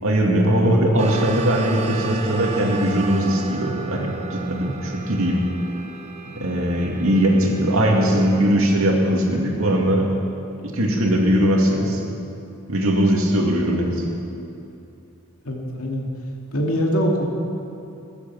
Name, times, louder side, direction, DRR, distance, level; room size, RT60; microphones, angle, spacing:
voice 1, 0.0-5.5 6.3-10.1 10.6-12.0 12.7-14.1, equal, 70° right, 0 dB, 2.4 m, -20 dB
sound 1, 1.0-8.5, right 5 dB, 30° right, 0.9 m, -35 dB
voice 2, 15.4-16.1 16.5-17.2, equal, 70° left, -1 dB, 2.5 m, -23 dB
21.5 x 8.3 x 7.2 m, 2.7 s
head